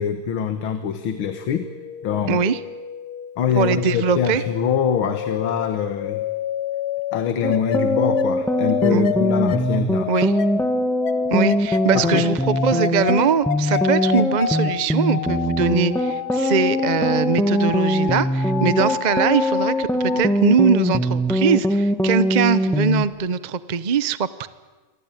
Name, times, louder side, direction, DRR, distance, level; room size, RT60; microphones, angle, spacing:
voice 1, 0.0-1.7 2.0-2.4 3.4-6.2 7.1-10.3 11.9-12.4 13.7-13.8 20.1-20.2, left 7 dB, 75° left, 9 dB, 2.1 m, -24 dB
sound 1, 1.1-20.2, left 9 dB, 55° left, 1.4 m, -29 dB
voice 2, 2.3-2.6 3.5-4.4 8.9-9.0 10.1-10.3 11.3-24.5, right 6 dB, 75° right, 15 dB, 0.4 m, -21 dB
sound 2, 7.4-23.1, equal, ahead, 1.4 m, -22 dB
27.5 x 24.0 x 9.2 m, 1.3 s
omnidirectional pair, 2.3 m